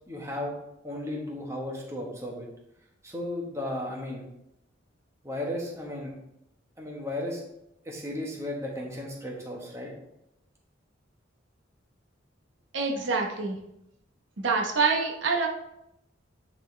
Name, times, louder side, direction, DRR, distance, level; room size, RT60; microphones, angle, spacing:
voice 1, 0.1-0.5 0.8-2.5 3.0-4.3 5.2-6.1 6.8-7.4 7.8-9.9, left 1 dB, 15° right, -1 dB, 1.2 m, -34 dB
voice 2, 12.7-13.6 14.4-15.5, right 4 dB, 70° right, 1 dB, 0.9 m, -26 dB
10.0 x 4.2 x 3.2 m, 0.83 s
head